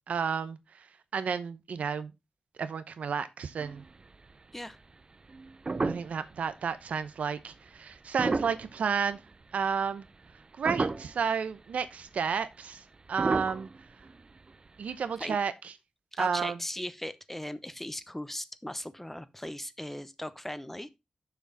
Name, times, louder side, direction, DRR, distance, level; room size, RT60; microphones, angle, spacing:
voice 1, 0.1-2.1 2.6-3.8 5.8-9.2 9.5-10.0 10.6-12.8 13.1-13.7 14.8-15.7 16.2-16.6, right 6 dB, 85° right, 0.8 m, -31 dB
sound 1, 3.6-4.3 4.7-4.8 5.3-6.4 6.8-6.9 8.0-9.4 9.8-10.3 10.6-11.3 11.7-11.8 12.0-12.2 13.1-14.7 14.9-15.0, right 3 dB, 40° right, 0.6 m, -33 dB
voice 2, 16.1-20.9, left 1 dB, 10° left, 0.8 m, -38 dB
7.0 x 6.0 x 4.0 m
cardioid pair, 65°, 2 cm